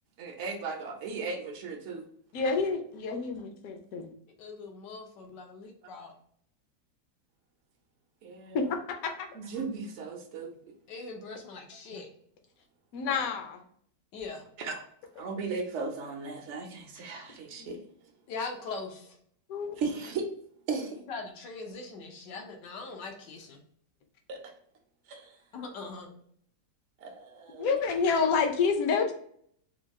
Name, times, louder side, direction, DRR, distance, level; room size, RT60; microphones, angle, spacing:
voice 1, 0.2-2.1 8.2-8.6 9.3-10.7 11.9-12.0 14.6-14.8 15.1-18.1 19.8-20.3 20.7-21.0 24.3-24.4 25.1-25.3 27.0-27.8, right 4 dB, 60° right, 3 dB, 0.8 m, -36 dB
voice 2, 2.3-4.1 8.5-9.3 12.9-13.6 17.6-17.7 19.5-19.8 27.6-29.1, left 5 dB, 65° left, 5 dB, 1.0 m, -28 dB
voice 3, 4.4-6.1 10.9-12.1 14.1-14.4 18.3-19.2 21.1-23.6 25.5-26.1, left 4 dB, 85° left, 2 dB, 1.5 m, -41 dB
4.5 x 2.3 x 3.4 m, 0.63 s
omnidirectional pair, 1.9 m